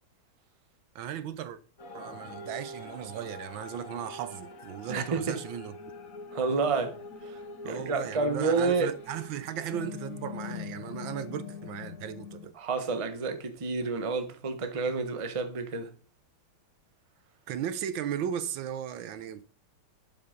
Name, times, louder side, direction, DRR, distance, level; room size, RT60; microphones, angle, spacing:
voice 1, 0.9-1.6 1.9-5.7 7.6-12.5 17.5-19.4, right 9 dB, 75° right, 1.5 m, -36 dB
sound 1, 1.8-12.5, left 4 dB, 45° left, 1.4 m, -43 dB
voice 2, 4.9-5.4 6.3-7.0 7.2-8.9 12.6-15.9, right 4 dB, 25° right, 0.8 m, -29 dB
12.0 x 5.7 x 5.2 m
omnidirectional pair, 2.2 m